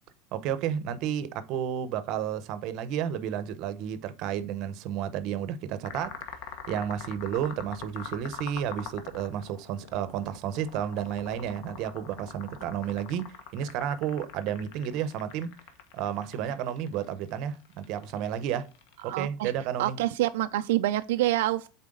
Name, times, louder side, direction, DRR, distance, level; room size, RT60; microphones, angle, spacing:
voice 1, 0.3-15.5 15.9-18.7 19.0-20.0, right 9 dB, 45° right, 0.7 m, -32 dB
sound 1, 5.9-19.1, left 7 dB, 60° left, 1.2 m, -43 dB
voice 2, 19.1-19.5 19.8-21.7, right 15 dB, 85° right, 0.4 m, -27 dB
7.8 x 4.1 x 3.7 m
supercardioid pair, 170°, 0 cm